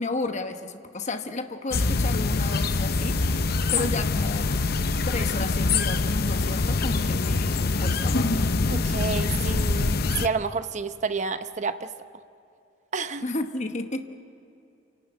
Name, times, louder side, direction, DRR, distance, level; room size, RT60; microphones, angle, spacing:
voice 1, 0.0-4.4 5.0-8.5 13.2-14.0, left 2 dB, 40° left, 7 dB, 1.1 m, -32 dB
sound 1, 1.7-10.3, left 3 dB, 60° left, 0.7 m, -24 dB
voice 2, 8.7-11.9 12.9-13.2, right 4 dB, 40° right, 10 dB, 0.8 m, -30 dB
28.0 x 12.0 x 9.1 m, 2.7 s
head